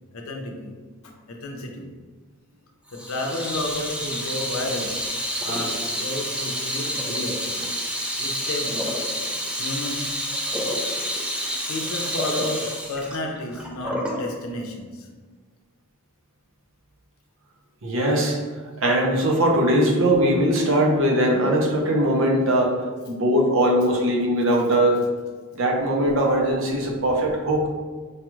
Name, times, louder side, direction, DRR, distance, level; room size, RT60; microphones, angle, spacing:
voice 1, 0.1-0.7 1.0-1.9 2.9-5.0 5.4-7.4 8.2-8.9 9.5-10.1 11.7-15.1, left 1 dB, 70° left, 1 dB, 0.6 m, -31 dB
Water tap faucet / Sink (filling or washing), 2.9-14.2, equal, 5° right, 0.4 m, -29 dB
voice 2, 17.8-18.4 18.8-22.8 23.1-25.0 25.5-27.7, right 1 dB, 65° right, 0 dB, 0.7 m, -20 dB
4.7 x 2.3 x 3.0 m, 1.5 s
head